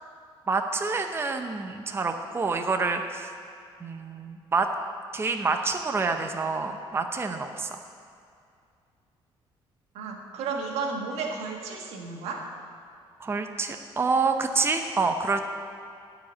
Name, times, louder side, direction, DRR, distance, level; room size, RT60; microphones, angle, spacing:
voice 1, 0.5-3.3 3.8-4.7 5.1-7.7 13.2-15.4, right 4 dB, 25° right, 6 dB, 0.7 m, -27 dB
voice 2, 9.9-12.5, right 4 dB, 90° right, 1 dB, 1.5 m, -33 dB
12.0 x 5.0 x 8.2 m, 2.4 s
cardioid pair, 105°, 10 cm